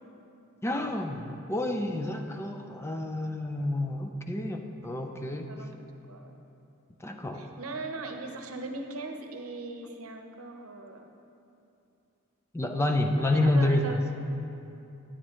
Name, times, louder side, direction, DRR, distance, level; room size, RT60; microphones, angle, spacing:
voice 1, 0.6-5.5 7.0-7.4 12.5-14.0, left 1 dB, 10° left, 4 dB, 0.4 m, -29 dB
voice 2, 7.3-11.1 12.9-14.0, right 3 dB, 75° right, 4 dB, 0.8 m, -40 dB
9.8 x 9.3 x 3.1 m, 2.7 s
head